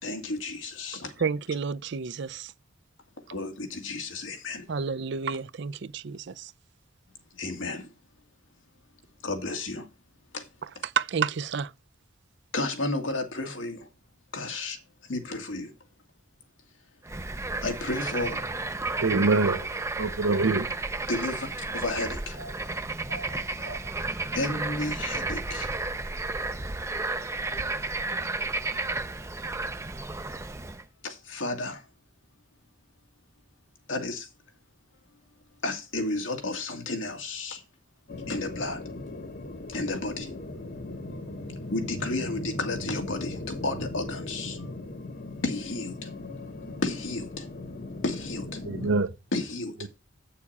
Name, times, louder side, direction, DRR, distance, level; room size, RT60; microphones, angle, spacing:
voice 1, 0.0-1.1 3.3-4.7 7.3-7.9 9.2-9.9 10.3-10.5 10.8-10.9 12.5-13.9 14.3-15.7 17.6-18.5 21.1-21.5 21.7-22.8 23.1-23.9 24.3-25.7 31.0-31.9 33.9-34.3 35.6-37.6 38.3-39.1 39.7-40.4 41.1-44.7 45.4-46.1 46.6-47.5 48.0-48.6 49.3-49.9, left 2 dB, 85° left, 2.0 m, -33 dB
voice 2, 1.2-2.5 4.7-6.5 10.8-11.7, right 6 dB, 60° right, 0.5 m, -30 dB
Bird / Frog, 17.1-30.8, right 3 dB, 15° right, 0.5 m, -32 dB
voice 3, 19.0-19.7 20.0-20.8 48.6-49.1 49.8-49.9, right 3 dB, 90° right, 0.8 m, -24 dB
sound 1, 38.1-49.0, left 2 dB, 50° left, 1.0 m, -38 dB
8.4 x 6.8 x 4.1 m
head